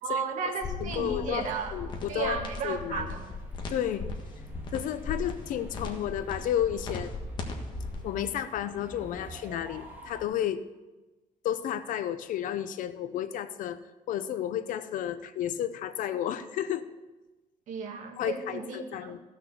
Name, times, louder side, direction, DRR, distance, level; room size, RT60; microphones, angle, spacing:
voice 1, 0.0-1.8 2.1-3.2 17.7-18.8 19.1-19.2, right 5 dB, 70° right, 3 dB, 1.9 m, -33 dB
sound 1, 0.6-8.0, left 3 dB, 35° left, 1.6 m, -38 dB
voice 2, 0.8-2.4 2.6-3.1 3.7-4.1 4.7-7.1 8.0-10.6 11.4-13.8 14.1-16.9 18.2-19.2, left 10 dB, 80° left, 12 dB, 0.7 m, -32 dB
sound 2, 1.7-10.2, right 1 dB, 15° right, 2.2 m, -47 dB
15.0 x 6.5 x 6.7 m, 1.1 s
cardioid pair, 160°, 13 cm